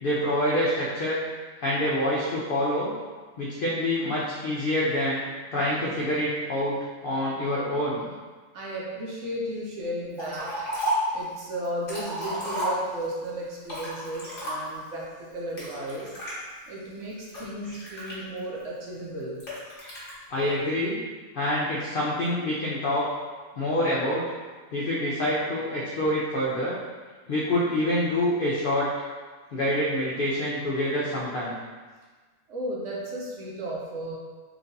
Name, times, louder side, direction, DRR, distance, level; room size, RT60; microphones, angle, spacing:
voice 1, 0.0-1.2 1.6-2.9 3.4-5.2 5.5-6.7 7.0-8.1 20.3-20.9 21.3-23.1 23.5-24.2 24.7-26.8 27.3-28.9 29.5-31.6, left 1 dB, 75° left, -6 dB, 0.5 m, -26 dB
voice 2, 8.5-10.6 11.1-16.1 16.7-19.4 32.5-34.2, right 1 dB, 65° right, -4 dB, 0.9 m, -34 dB
Liquid, 10.2-11.2 11.6-13.2 13.6-14.9 15.6-16.3 16.9-18.6 19.4-20.1, right 1 dB, 40° left, 1.1 m, -32 dB
3.9 x 2.5 x 2.6 m, 1.4 s
omnidirectional pair, 1.6 m